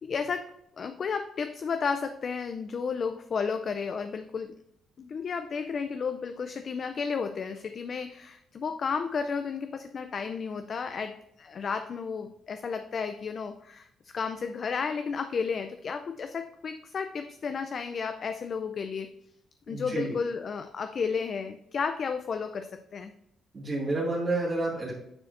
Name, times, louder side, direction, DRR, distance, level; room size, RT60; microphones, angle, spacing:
voice 1, 0.0-4.6 5.0-19.1 19.7-23.1, left 5 dB, 50° left, 8 dB, 0.4 m, -33 dB
voice 2, 19.7-20.1 23.5-24.9, right 2 dB, 35° right, -7 dB, 2.0 m, -29 dB
9.4 x 4.5 x 2.6 m, 0.78 s
cardioid pair, 90°, 0 cm